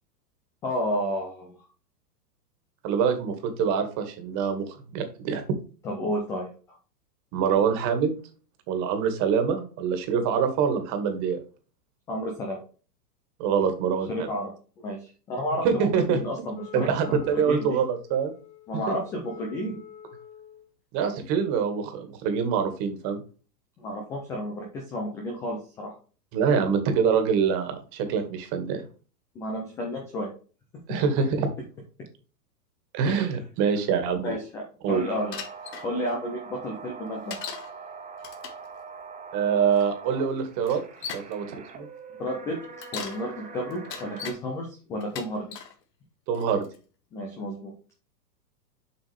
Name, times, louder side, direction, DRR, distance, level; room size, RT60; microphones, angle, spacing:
voice 1, 0.6-1.7 5.8-6.5 12.1-12.6 14.1-14.5 14.8-17.2 17.5-17.8 18.7-19.8 23.8-25.9 29.3-30.3 33.1-33.2 34.2-34.6 34.9-35.4 35.8-37.5 42.2-42.6 42.9-45.5 47.1-47.7, equal, 5° left, 0 dB, 0.3 m, -31 dB
voice 2, 2.8-5.4 7.3-8.2 8.7-11.4 13.4-14.3 15.6-16.2 16.7-18.3 18.9-19.0 20.9-23.2 26.3-28.8 30.9-31.5 32.9-34.3 34.8-35.0 39.3-40.8 41.1-41.4 41.7-41.9 46.3-46.6, right 6 dB, 35° right, 7 dB, 2.0 m, -25 dB
Wind instrument woodwind instrument, 16.5-20.7, left 8 dB, 45° left, 2.4 m, -47 dB
sound 1, 34.9-44.3, right 5 dB, 15° right, 1.4 m, -43 dB
Bicycle, 35.3-35.9 37.3-37.7 38.2-38.7 39.8-39.9 40.6-41.3 42.6-43.2 43.7-44.4 45.0-45.7 46.3-46.8, left 7 dB, 85° left, 2.0 m, -38 dB
7.4 x 5.3 x 3.4 m, 0.36 s
hypercardioid pair, 140°, 48 cm